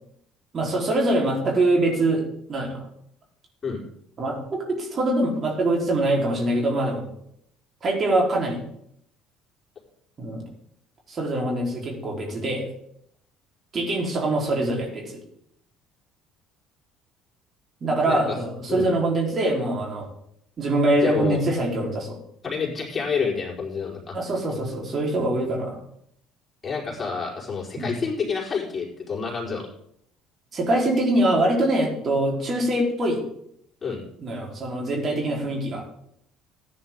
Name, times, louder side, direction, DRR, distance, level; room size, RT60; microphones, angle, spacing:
voice 1, 0.5-2.2 2.5-2.8 4.2-4.4 4.8-7.1 7.8-8.6 10.2-10.4 11.1-12.7 13.7-15.2 17.8-20.1 20.6-22.2 24.1-25.8 27.8-27.9 30.5-33.2 34.2-35.8, right 1 dB, 40° right, -2 dB, 4.0 m, -23 dB
voice 2, 18.1-18.4 18.7-18.9 21.0-21.4 22.4-24.2 26.6-29.7 33.8-34.0, left 5 dB, 30° left, -3 dB, 4.6 m, -28 dB
15.0 x 9.5 x 3.8 m, 0.71 s
hypercardioid pair, 60°, 0 cm